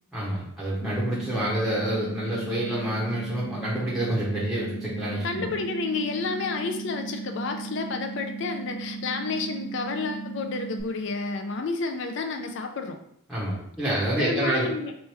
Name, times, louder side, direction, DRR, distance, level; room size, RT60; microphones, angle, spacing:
voice 1, 0.1-5.4 13.3-14.7, right 1 dB, ahead, -7 dB, 0.8 m, -28 dB
sound 1, 0.8-10.8, right 4 dB, 85° left, 1.0 m, -36 dB
voice 2, 5.2-13.0 14.2-14.9, left 4 dB, 60° left, 5 dB, 0.4 m, -30 dB
3.2 x 3.1 x 3.3 m, 0.74 s
head